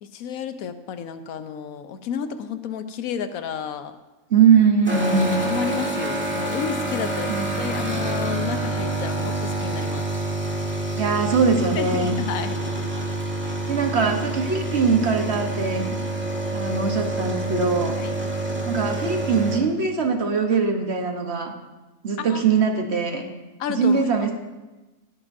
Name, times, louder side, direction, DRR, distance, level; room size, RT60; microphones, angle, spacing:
voice 1, 0.0-4.0 5.3-10.1 11.7-12.6 18.0-18.2 22.2-22.4 23.6-24.1, left 7 dB, 75° left, 10 dB, 1.2 m, -31 dB
voice 2, 4.3-5.4 7.3-7.6 11.0-12.2 13.7-16.0 16.5-18.0 18.7-21.5 22.0-23.3 23.7-24.3, right 5 dB, 50° right, 4 dB, 1.3 m, -21 dB
sound 1, 4.9-19.6, right 2 dB, 10° right, 1.6 m, -27 dB
16.0 x 12.0 x 2.6 m, 1.1 s
omnidirectional pair, 1.5 m